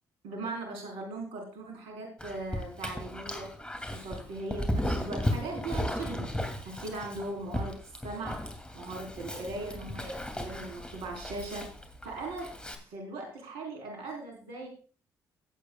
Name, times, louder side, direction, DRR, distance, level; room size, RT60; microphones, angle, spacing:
voice 1, 0.2-3.5 3.9-6.3 6.6-7.7 8.0-8.4 8.7-11.7 12.0-12.5 12.9-14.7, right 2 dB, 75° right, 2 dB, 4.1 m, -39 dB
Dog, 2.2-12.8, left 1 dB, 10° left, 2.6 m, -36 dB
18.5 x 8.4 x 2.3 m, 0.39 s
hypercardioid pair, 50°, 10 cm